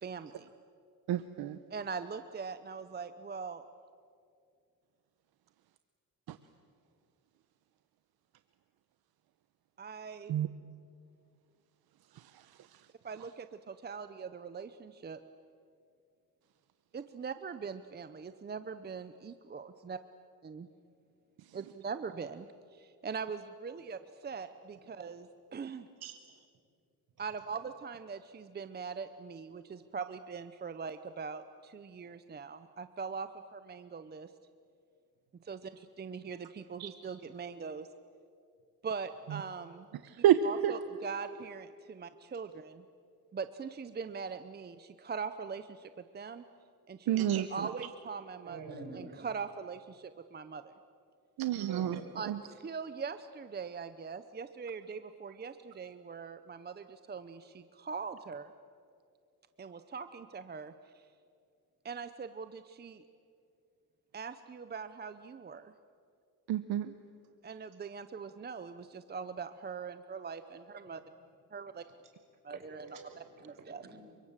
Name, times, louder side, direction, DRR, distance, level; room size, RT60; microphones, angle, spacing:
voice 1, 0.0-0.5 1.7-3.6 9.8-10.4 13.0-15.2 16.9-20.0 20.4-20.7 21.5-25.9 27.2-34.3 35.4-37.9 38.8-39.9 40.4-42.8 43.3-46.4 46.9-48.6 48.9-50.7 52.2-58.5 59.6-61.1 61.8-63.0 64.1-65.7 67.4-71.0 71.5-71.8 72.4-72.8 73.4-73.9, right 5 dB, 25° right, 11 dB, 0.7 m, -42 dB
voice 2, 1.1-1.6 6.3-6.4 10.3-10.5 12.1-12.5 21.5-21.6 26.0-26.2 36.8-36.9 40.0-40.7 47.1-47.5 51.4-52.0 52.3-52.4 66.5-66.9, right 10 dB, 75° right, 11 dB, 1.0 m, -29 dB
voice 3, 48.4-49.0 51.7-52.0 70.5-70.6 70.9-71.0 72.5-73.5 73.9-74.0, right 4 dB, 55° right, 3 dB, 6.0 m, -47 dB
29.0 x 24.5 x 7.5 m, 2.3 s
cardioid pair, 135°, 37 cm